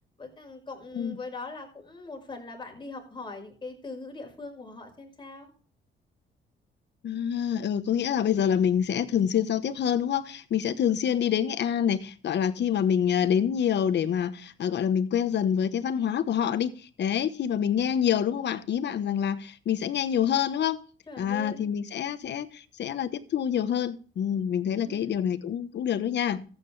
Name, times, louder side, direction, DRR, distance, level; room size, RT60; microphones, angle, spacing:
voice 1, 0.2-5.5 21.1-21.7 22.2-22.3 24.8-25.2, left 3 dB, 25° left, 5.6 m, -41 dB
voice 2, 7.0-20.8 21.2-26.4, left 8 dB, 60° left, 1.1 m, -26 dB
14.0 x 9.1 x 3.3 m
cardioid pair, 90°, 20 cm